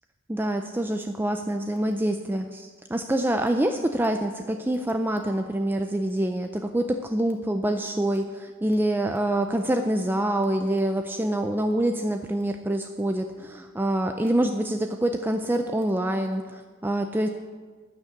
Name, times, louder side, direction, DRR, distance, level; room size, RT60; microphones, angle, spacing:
voice 1, 0.3-17.3, right 1 dB, 10° right, 6 dB, 0.4 m, -26 dB
12.0 x 6.4 x 8.3 m, 1.4 s
head